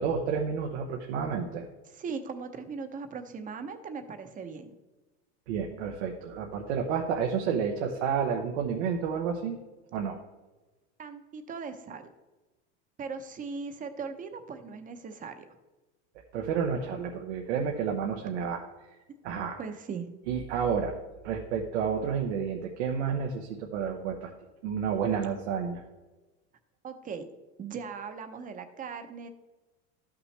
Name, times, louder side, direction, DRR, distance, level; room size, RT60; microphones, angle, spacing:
voice 1, 0.0-1.7 5.5-9.6 9.9-10.2 16.3-18.6 19.2-19.6 20.3-20.9 21.2-24.3 24.6-25.8, right 6 dB, 85° right, 2 dB, 1.1 m, -30 dB
voice 2, 1.9-4.7 11.0-12.0 13.0-15.5 18.4-18.5 19.6-20.1 26.8-27.2 27.6-29.3, right 5 dB, 25° right, 8 dB, 0.8 m, -39 dB
12.5 x 5.9 x 3.2 m, 1.2 s
supercardioid pair, 130°, 34 cm